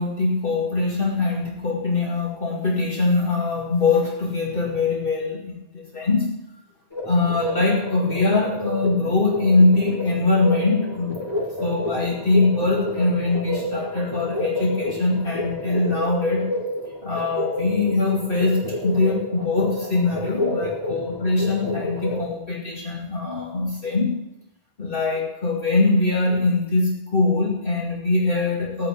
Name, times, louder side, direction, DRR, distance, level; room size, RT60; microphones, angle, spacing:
voice 1, 0.0-5.4 5.7-6.3 7.1-11.2 11.6-16.5 17.0-24.1 24.8-28.9, left 3 dB, 55° left, -3 dB, 2.5 m, -22 dB
sound 1, 6.9-22.3, left 1 dB, 25° left, 3.3 m, -29 dB
15.0 x 5.6 x 9.4 m, 0.89 s
omnidirectional pair, 1.1 m